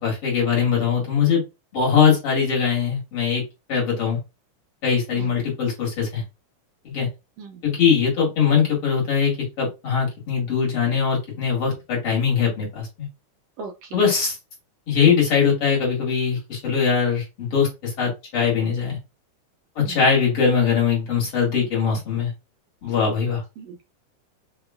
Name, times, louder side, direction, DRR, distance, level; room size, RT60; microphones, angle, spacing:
voice 1, 0.0-1.4 1.7-3.4 3.7-4.2 4.8-6.2 6.8-7.1 7.6-13.1 13.9-14.4 14.9-19.0 19.8-22.3 22.8-23.4, left 6 dB, 50° left, -3 dB, 2.6 m, -21 dB
voice 2, 13.6-14.0 19.8-20.0 23.6-23.8, right 4 dB, 75° right, 4 dB, 1.6 m, -38 dB
5.1 x 2.9 x 2.3 m, 0.25 s
omnidirectional pair, 3.5 m